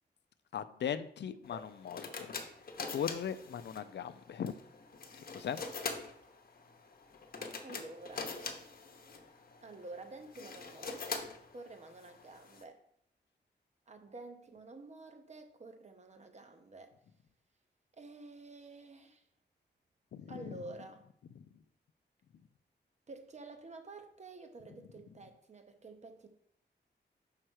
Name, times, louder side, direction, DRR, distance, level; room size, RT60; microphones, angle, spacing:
voice 1, 0.5-2.3 2.9-4.5 5.3-5.6 20.1-20.5, left 8 dB, 75° left, 12 dB, 0.5 m, -38 dB
sound 1, 1.4-12.6, left 4 dB, 55° left, 0.9 m, -44 dB
voice 2, 7.6-8.3 9.6-12.8 13.9-16.9 18.0-19.2 20.3-21.1 23.1-26.3, right 2 dB, 40° right, 6 dB, 0.9 m, -50 dB
5.7 x 4.4 x 6.3 m, 0.68 s
wide cardioid pair, 155°, 18 cm